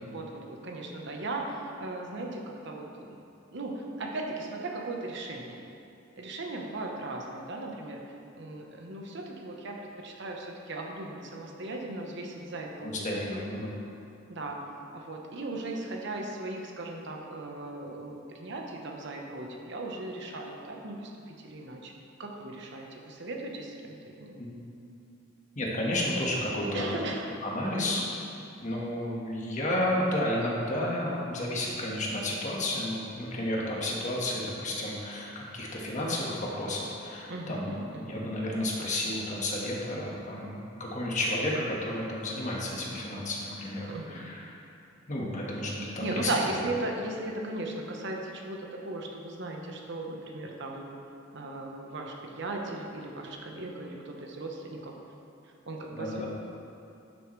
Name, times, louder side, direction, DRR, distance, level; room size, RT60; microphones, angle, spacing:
voice 1, 0.1-3.2 3.5-5.6 6.2-8.0 8.3-13.5 14.3-14.6 14.9-21.9 22.2-24.4 26.7-27.3 27.6-27.9 37.3-38.4 43.9-44.3 46.0-51.0 51.3-54.9 55.7-56.3, right 2 dB, 65° right, 1 dB, 1.0 m, -37 dB
voice 2, 12.8-13.7 24.4-24.6 25.5-27.1 27.4-28.0 28.6-37.7 38.0-44.5 45.1-46.3 55.9-56.3, left 1 dB, 40° left, -3 dB, 1.4 m, -32 dB
11.5 x 6.8 x 3.2 m, 2.6 s
head